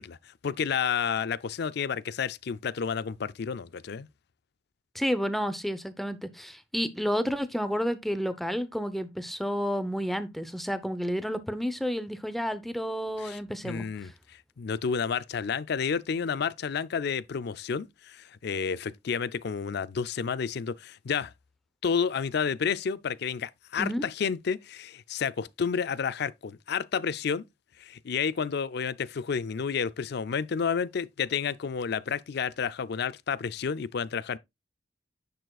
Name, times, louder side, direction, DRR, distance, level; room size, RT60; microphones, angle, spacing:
voice 1, 0.0-4.1 13.2-13.4 13.6-21.3 21.8-27.4 27.8-34.4, left 6 dB, 65° left, 0.4 m, -30 dB
voice 2, 4.9-14.1 23.8-24.1, equal, ahead, 0.8 m, -31 dB
10.0 x 6.7 x 2.4 m
head